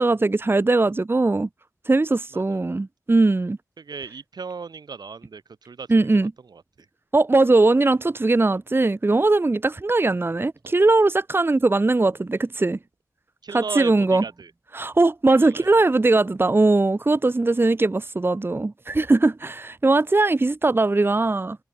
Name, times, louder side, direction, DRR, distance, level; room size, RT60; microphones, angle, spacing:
voice 1, 0.0-1.5 1.9-3.6 5.9-6.3 7.1-12.8 13.5-14.2 14.7-21.6, right 2 dB, 35° right, 0.9 m, -20 dB
voice 2, 3.8-5.9 6.1-6.6 13.4-14.5 15.4-15.8, right 5 dB, 85° right, 1.9 m, -36 dB
wide cardioid pair, 65°, 7 cm